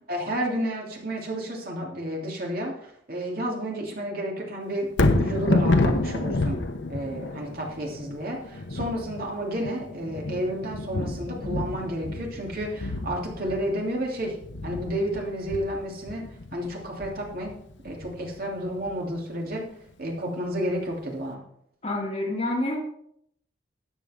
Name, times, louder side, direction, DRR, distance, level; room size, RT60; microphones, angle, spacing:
voice 1, 0.1-6.6 6.9-14.3 14.6-16.3 16.5-17.6 17.8-19.7 20.0-21.4, equal, 55° right, -1 dB, 3.0 m, -31 dB
Thunder, 4.9-19.1 19.5-19.6, left 2 dB, 85° left, 1.0 m, -29 dB
voice 2, 21.8-22.8, left 1 dB, 35° left, -3 dB, 2.4 m, -27 dB
13.5 x 9.1 x 3.7 m, 0.70 s
head